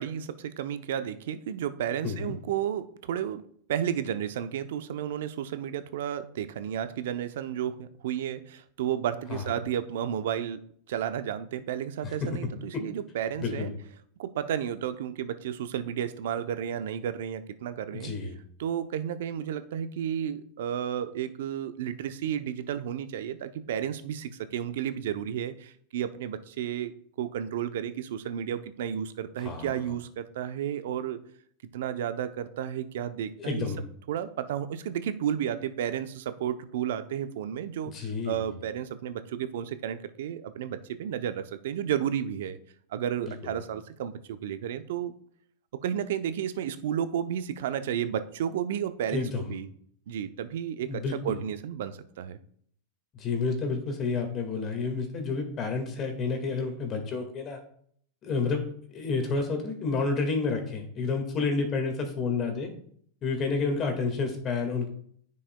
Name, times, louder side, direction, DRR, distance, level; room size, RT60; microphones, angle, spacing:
voice 1, 0.0-3.4 3.7-10.6 10.9-13.7 14.2-18.1 18.6-26.9 27.2-31.2 31.7-33.7 34.1-42.6 42.9-45.1 45.8-49.7 50.1-52.4, right 9 dB, 70° right, 11 dB, 0.6 m, -32 dB
voice 2, 2.0-2.4 9.3-9.4 12.2-12.3 12.7-12.8 13.4-13.7 17.9-18.4 29.4-29.7 33.4-33.8 37.9-38.4 43.4-43.6 49.1-49.5 50.9-51.4 53.1-57.6 58.2-58.6 58.9-62.7 63.2-64.9, left 4 dB, 35° left, 4 dB, 1.8 m, -30 dB
9.8 x 5.3 x 2.2 m, 0.62 s
hypercardioid pair, 100°, 0 cm